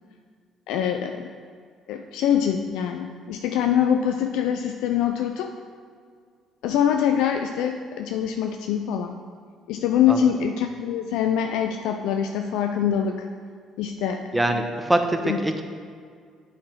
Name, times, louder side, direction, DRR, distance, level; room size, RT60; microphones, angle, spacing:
voice 1, 0.7-1.3 1.9-5.6 6.6-9.2 9.7-13.3 13.8-14.2 14.5-14.6 15.2-15.4, left 9 dB, 75° left, 5 dB, 0.4 m, -24 dB
voice 2, 14.3-15.6, right 1 dB, 15° right, 5 dB, 0.9 m, -23 dB
8.4 x 5.0 x 4.5 m, 2.1 s
hypercardioid pair, 55°, 0 cm